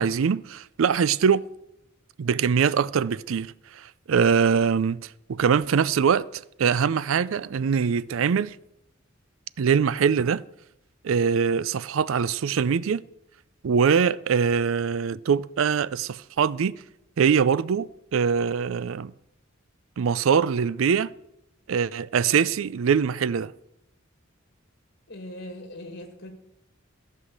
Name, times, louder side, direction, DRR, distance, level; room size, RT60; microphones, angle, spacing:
voice 1, 0.0-1.4 2.2-8.6 9.6-10.4 11.0-13.0 13.6-16.7 17.2-19.1 20.0-21.1 21.7-23.5, right 6 dB, 75° right, 0.4 m, -23 dB
voice 2, 25.1-26.3, left 1 dB, 55° left, 2.3 m, -40 dB
14.5 x 5.7 x 8.0 m
head